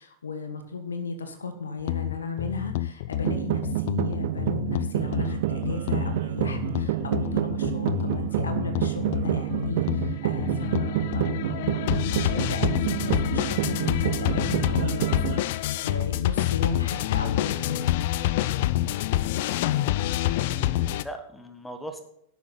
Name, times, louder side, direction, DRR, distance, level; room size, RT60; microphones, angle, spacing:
voice 1, 0.0-17.9, left 4 dB, 70° left, 8 dB, 1.4 m, -35 dB
sound 1, 1.9-21.0, left 14 dB, 50° left, 0.4 m, -27 dB
sound 2, 3.2-15.4, right 16 dB, 50° right, 0.5 m, -28 dB
voice 2, 20.4-22.0, equal, 5° left, 7 dB, 1.3 m, -39 dB
11.0 x 8.5 x 3.9 m, 0.73 s
figure-of-eight pair, 90°, 0 cm